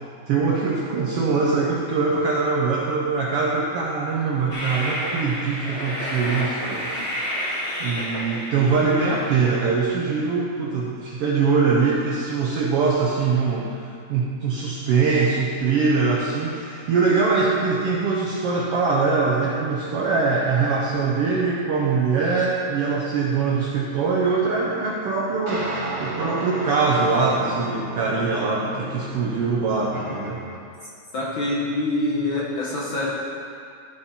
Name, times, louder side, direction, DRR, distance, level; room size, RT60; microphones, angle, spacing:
voice 1, 0.0-6.9 7.8-13.7 14.1-30.4, right 4 dB, 75° right, -3 dB, 1.4 m, -22 dB
Train, 4.5-9.5, equal, 25° left, 1.8 m, -30 dB
sound 1, 25.5-30.6, right 2 dB, 55° right, 2.3 m, -33 dB
voice 2, 31.1-33.1, left 2 dB, 55° left, -5 dB, 1.5 m, -25 dB
13.5 x 5.2 x 4.2 m, 2.4 s
omnidirectional pair, 3.3 m